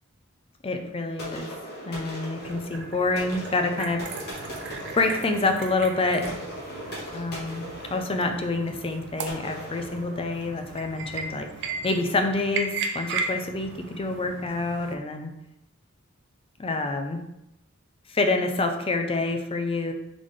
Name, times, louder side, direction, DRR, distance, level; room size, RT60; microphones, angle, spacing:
voice 1, 0.6-1.5 1.8-4.0 5.0-6.4 7.1-11.5 11.8-15.3 16.6-17.2 18.1-19.9, left 3 dB, 25° left, 5 dB, 0.4 m, -27 dB
sound 1, 1.2-10.8, equal, 50° left, 1.3 m, -39 dB
sound 2, 2.4-14.9, right 4 dB, 55° right, 0.5 m, -37 dB
4.0 x 3.6 x 3.2 m, 0.86 s
head